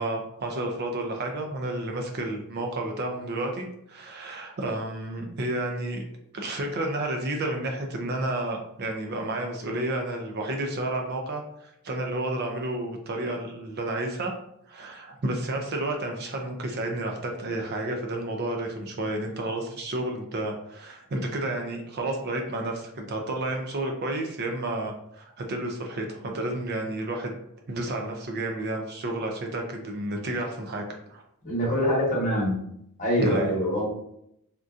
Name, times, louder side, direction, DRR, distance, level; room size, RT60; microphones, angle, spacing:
voice 1, 0.0-6.0 6.3-14.3 14.7-27.3 27.7-31.2 33.2-33.6, right 1 dB, 45° right, 2 dB, 0.5 m, -31 dB
voice 2, 31.4-32.6 33.0-33.9, equal, 35° left, -4 dB, 1.1 m, -24 dB
3.6 x 2.6 x 2.4 m, 0.76 s
head